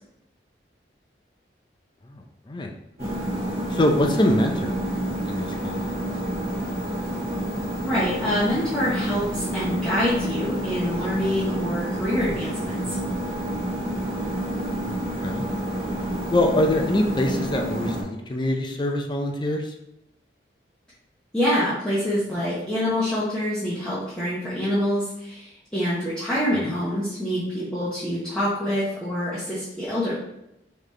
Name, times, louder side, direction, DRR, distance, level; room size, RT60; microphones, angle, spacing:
sound 1, 3.0-18.0, right 1 dB, 40° right, 1.2 m, -29 dB
voice 1, 3.7-4.8 5.3-5.8 14.8-15.4 16.3-19.6 26.5-26.6, left 1 dB, 25° left, 3 dB, 0.4 m, -24 dB
voice 2, 7.9-13.0 21.3-30.2, equal, 5° left, -11 dB, 0.8 m, -26 dB
3.9 x 3.2 x 3.2 m, 0.83 s
head